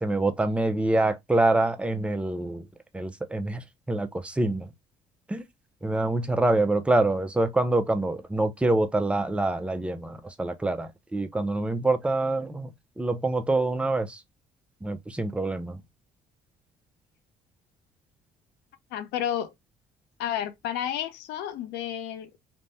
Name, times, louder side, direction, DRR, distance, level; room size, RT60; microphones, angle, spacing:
voice 1, 0.0-2.7 2.9-4.7 5.3-5.4 5.8-14.2 14.8-15.8, right 2 dB, 5° right, 0.4 m, -26 dB
voice 2, 18.9-19.5 20.2-22.4, left 10 dB, 85° left, 0.5 m, -31 dB
3.3 x 2.1 x 2.5 m
cardioid pair, 110°, 17 cm